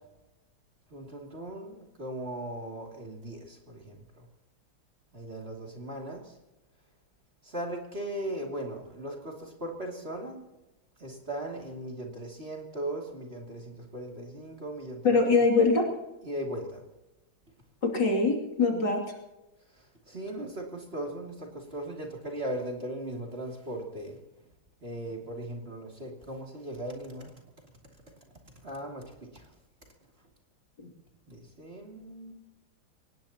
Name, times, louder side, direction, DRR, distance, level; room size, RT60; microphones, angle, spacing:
voice 1, 0.9-4.3 5.1-6.3 7.4-10.5 11.0-15.2 16.2-16.8 20.1-24.2 24.8-27.3 28.6-29.5 31.3-32.3, right 1 dB, 30° right, 0 dB, 2.8 m, -38 dB
voice 2, 15.0-15.9 17.8-19.1, left 3 dB, 55° left, 1 dB, 3.4 m, -23 dB
24.0 x 19.0 x 2.9 m, 0.99 s
omnidirectional pair, 2.3 m